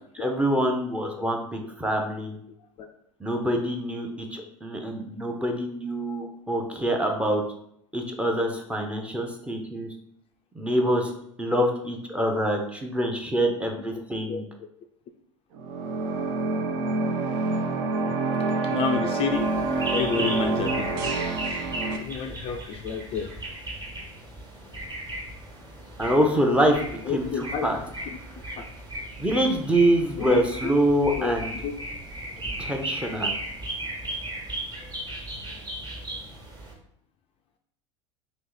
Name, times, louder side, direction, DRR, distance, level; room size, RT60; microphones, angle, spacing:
voice 1, 0.2-2.4 3.2-7.4 7.9-9.9 10.5-11.1 11.4-14.4 26.0-26.8 27.1-27.8 29.2-31.5 32.6-33.3, right 1 dB, 5° right, 2 dB, 0.6 m, -25 dB
sound 1, 15.5-22.0, right 3 dB, 55° right, 0.5 m, -27 dB
voice 2, 18.6-19.5 19.9-21.2 22.0-23.3 27.1-27.7 28.1-28.7 30.2-30.7 31.2-31.4 31.6-31.7, left 6 dB, 35° left, 4 dB, 0.4 m, -30 dB
sound 2, 19.3-36.7, right 1 dB, 25° right, 1.3 m, -36 dB
3.0 x 3.0 x 3.8 m, 0.72 s
hypercardioid pair, 85°, 17 cm